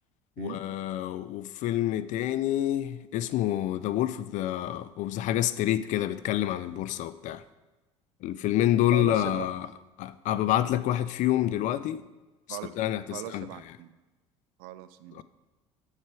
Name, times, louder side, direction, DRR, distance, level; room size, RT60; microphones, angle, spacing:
voice 1, 0.4-7.4 8.2-9.7 10.0-12.0 12.5-13.5 15.1-15.2, left 13 dB, 50° left, 0.5 m, -28 dB
voice 2, 8.9-9.5 12.5-12.7 13.1-13.9 14.6-15.2, right 14 dB, 65° right, 0.5 m, -39 dB
7.4 x 6.4 x 4.7 m
hypercardioid pair, 65°, 16 cm